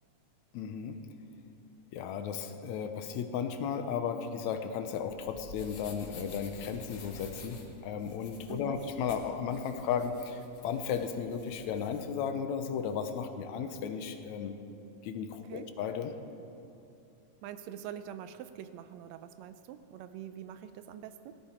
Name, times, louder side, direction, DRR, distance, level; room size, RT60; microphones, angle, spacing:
voice 1, 0.5-1.0 1.9-14.6 15.0-16.1, left 7 dB, 75° left, 7 dB, 2.0 m, -35 dB
sound 1, 5.0-12.0, left 4 dB, 50° left, 1.4 m, -50 dB
voice 2, 8.5-8.8 15.3-15.7 17.4-21.3, right 10 dB, 80° right, 11 dB, 1.6 m, -44 dB
16.5 x 13.5 x 4.4 m, 2.7 s
omnidirectional pair, 3.5 m